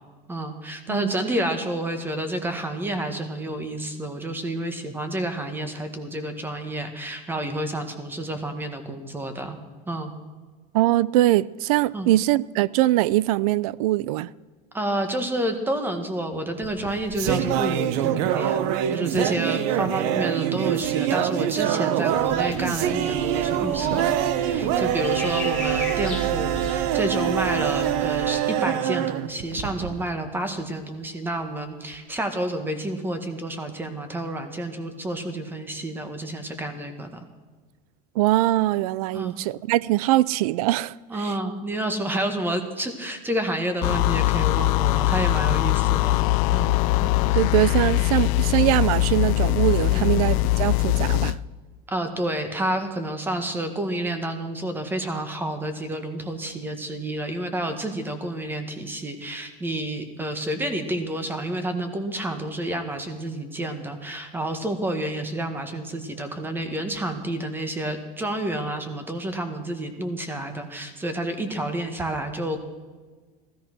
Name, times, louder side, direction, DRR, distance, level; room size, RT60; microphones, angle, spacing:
voice 1, 0.3-9.6 9.9-10.1 11.9-12.1 14.7-24.1 24.4-37.1 39.1-39.3 41.1-46.8 47.3-47.4 49.9-50.2 51.9-72.6, right 1 dB, 10° right, 1.8 m, -29 dB
voice 2, 10.7-14.3 38.2-40.9 47.2-51.4, right 16 dB, 85° right, 0.5 m, -22 dB
sound 1, 16.6-30.1, right 11 dB, 70° right, 1.0 m, -25 dB
sound 2, 22.1-28.3, equal, 5° left, 3.0 m, -35 dB
sound 3, 43.8-51.4, left 19 dB, 75° left, 0.5 m, -21 dB
16.0 x 14.0 x 6.2 m
supercardioid pair, 140°, 18 cm